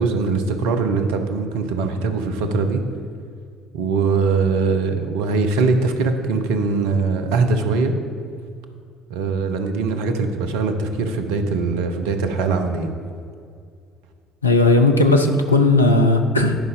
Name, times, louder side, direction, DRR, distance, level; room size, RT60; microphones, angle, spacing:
voice 1, 0.0-2.8 3.7-8.0 9.1-12.9, right 4 dB, 65° right, 7 dB, 0.8 m, -21 dB
voice 2, 14.4-16.6, left 2 dB, 85° left, 4 dB, 0.6 m, -16 dB
11.0 x 5.4 x 5.3 m, 2.3 s
figure-of-eight pair, 55°, 0 cm